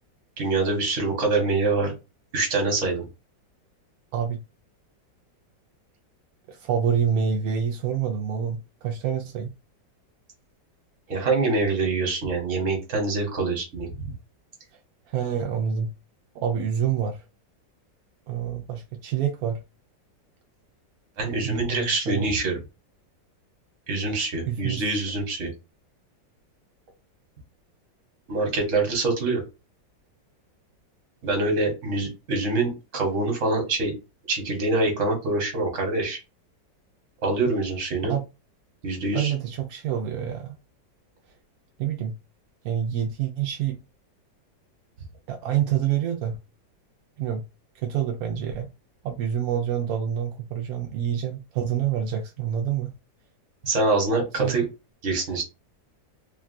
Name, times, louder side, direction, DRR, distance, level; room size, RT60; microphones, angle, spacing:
voice 1, 0.4-1.9 2.3-3.0 11.1-14.1 21.2-22.6 23.9-25.5 28.3-29.4 31.2-33.9 34.3-36.2 37.2-38.1 38.8-39.3 53.6-54.6 55.0-55.4, right 3 dB, 45° right, 1.4 m, -25 dB
voice 2, 4.1-4.4 6.5-9.5 15.1-15.9 16.3-17.2 18.3-19.6 21.4-22.3 24.5-24.8 38.1-38.2 39.1-40.6 41.8-42.1 42.6-43.8 45.3-46.4 47.2-47.4 47.7-48.7 49.0-52.9 54.4-54.7, right 8 dB, 75° right, 0.8 m, -27 dB
3.6 x 2.3 x 2.5 m
omnidirectional pair, 2.0 m